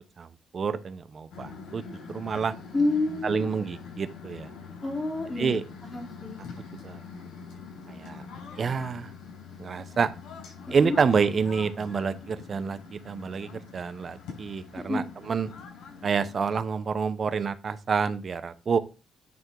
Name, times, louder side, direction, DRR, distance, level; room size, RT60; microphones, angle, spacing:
voice 1, 0.5-1.8 2.1-2.5 3.2-4.5 5.4-5.6 6.8-7.0 7.9-8.2 8.6-9.1 9.6-10.1 10.7-15.5 16.0-18.8, right 5 dB, 45° right, 13 dB, 0.8 m, -28 dB
sound 1, 1.3-16.6, left 5 dB, 85° left, 4.7 m, -44 dB
voice 2, 2.7-3.5 4.8-5.5 5.9-6.4 10.7-11.0 14.7-15.1, left 2 dB, 20° left, 1 dB, 2.4 m, -29 dB
9.6 x 3.6 x 4.6 m, 0.31 s
cardioid pair, 90°, 0 cm